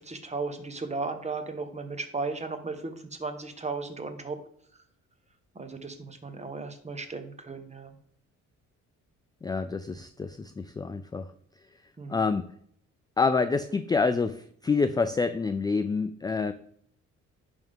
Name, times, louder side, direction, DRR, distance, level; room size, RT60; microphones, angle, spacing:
voice 1, 0.0-4.4 4.7-4.8 5.5-8.0 12.0-12.2, right 3 dB, 20° right, 7 dB, 1.1 m, -35 dB
voice 2, 9.4-11.3 12.1-12.5 13.2-16.5, left 4 dB, 15° left, 10 dB, 0.3 m, -27 dB
10.5 x 3.6 x 3.6 m, 0.64 s
cardioid pair, 90°, 30 cm